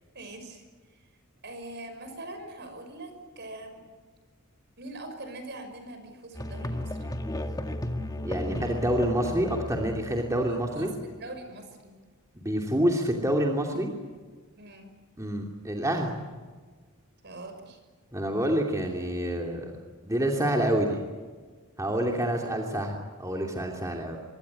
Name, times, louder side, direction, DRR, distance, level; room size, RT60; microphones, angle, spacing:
voice 1, 0.1-0.6 1.4-3.9 4.8-7.0 10.5-11.9 14.6-14.9 17.2-17.8 21.8-22.1, right 2 dB, 50° right, 7 dB, 6.0 m, -42 dB
Musical instrument, 6.3-11.2, left 1 dB, 15° left, 1.9 m, -34 dB
voice 2, 8.2-10.9 12.3-13.9 15.2-16.1 18.1-19.7 20.0-21.0 21.8-24.2, right 1 dB, 15° right, 1 dB, 2.8 m, -27 dB
25.0 x 23.0 x 9.6 m, 1.5 s
head